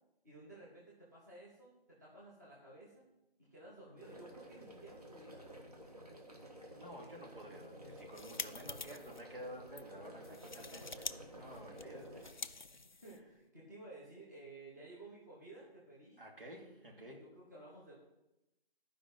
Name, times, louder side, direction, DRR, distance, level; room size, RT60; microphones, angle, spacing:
voice 1, 0.2-3.0 3.5-5.8 10.4-10.9 11.3-11.4 12.8-16.2 16.6-18.0, right 2 dB, 20° right, -7 dB, 1.4 m, -55 dB
sound 1, 4.0-12.3, right 1 dB, 40° right, 1.7 m, -53 dB
voice 2, 6.7-12.3 16.2-17.3, equal, 60° right, 0 dB, 2.6 m, -51 dB
sound 2, 7.9-9.2 9.7-9.8 10.2-11.2 11.4-13.4, left 3 dB, 50° left, 0.4 m, -46 dB
12.0 x 5.1 x 5.7 m, 0.91 s
figure-of-eight pair, 165°, 30 cm